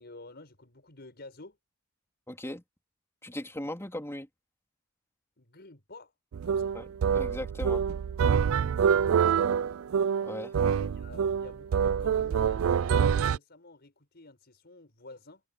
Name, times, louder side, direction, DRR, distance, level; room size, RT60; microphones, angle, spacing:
voice 1, 0.0-1.6 5.4-6.1 6.4-6.8 9.0-9.5 10.5-15.4, left 2 dB, 50° left, 6.1 m, -50 dB
voice 2, 2.3-2.6 3.2-4.3 6.7-6.8 7.1-7.8 10.2-10.6, left 1 dB, 15° left, 3.8 m, -38 dB
sound 1, 6.3-13.4, right 7 dB, 75° right, 0.4 m, -26 dB
head